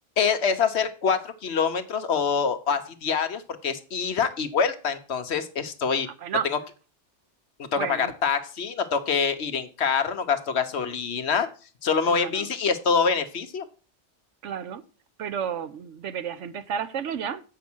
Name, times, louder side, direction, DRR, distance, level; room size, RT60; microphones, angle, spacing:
voice 1, 0.2-6.1 6.5-6.6 7.6-11.5 11.8-13.6, left 6 dB, 65° left, 1.2 m, -25 dB
voice 2, 6.1-6.5 7.8-8.1 12.0-12.5 14.4-14.8 15.2-17.4, right 8 dB, 85° right, 1.1 m, -32 dB
8.4 x 6.5 x 6.1 m
omnidirectional pair, 1.2 m